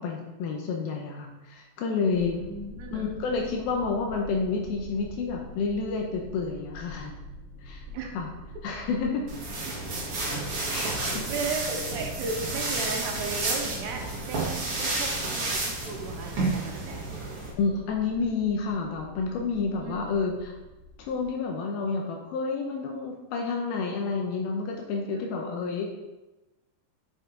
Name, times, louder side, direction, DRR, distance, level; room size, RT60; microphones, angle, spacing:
voice 1, 0.0-2.4 2.9-7.1 7.6-7.8 8.1-8.3 8.6-9.2 10.7-11.3 17.6-20.6 21.0-25.9, left 4 dB, 75° left, 1 dB, 2.5 m, -29 dB
sound 1, 2.1-21.3, left 2 dB, 20° right, 2.3 m, -46 dB
voice 2, 2.3-3.4 7.9-8.1 9.7-9.8 11.3-17.1 19.8-20.1 25.1-25.7, right 4 dB, 80° right, 2 dB, 3.1 m, -36 dB
sound 2, 9.3-17.5, right 2 dB, 50° right, 1.8 m, -31 dB
7.8 x 6.7 x 3.8 m, 1.1 s
omnidirectional pair, 4.9 m